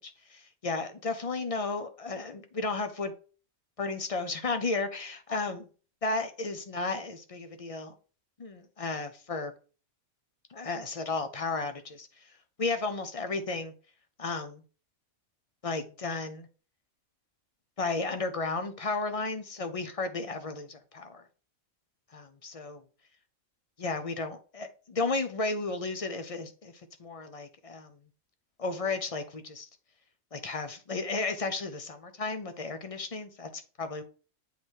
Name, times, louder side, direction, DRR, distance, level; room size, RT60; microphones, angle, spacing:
voice 1, 0.0-3.1 3.8-5.7 6.0-8.0 8.4-9.5 10.5-12.3 12.6-13.7 14.2-14.6 15.6-16.5 17.8-21.2 22.1-22.8 23.8-26.7 27.0-28.0 28.6-29.7 30.3-34.0, left 3 dB, 40° left, 0.5 m, -33 dB
8.0 x 3.3 x 4.5 m
omnidirectional pair, 1.5 m